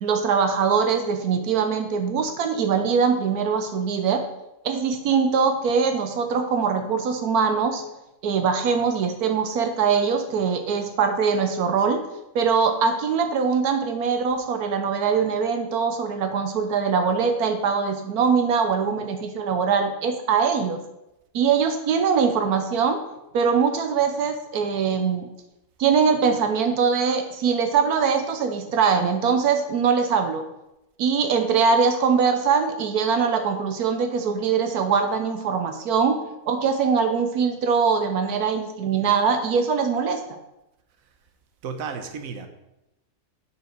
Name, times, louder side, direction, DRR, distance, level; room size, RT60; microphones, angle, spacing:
voice 1, 0.0-4.2 4.6-7.8 8.2-12.0 12.3-20.8 21.3-23.0 23.3-25.3 25.8-30.5 31.0-36.2 36.5-40.4, right 6 dB, 90° right, 7 dB, 1.3 m, -22 dB
voice 2, 41.6-42.5, right 6 dB, 65° right, 6 dB, 1.3 m, -33 dB
7.2 x 7.2 x 5.2 m, 0.90 s
omnidirectional pair, 1.6 m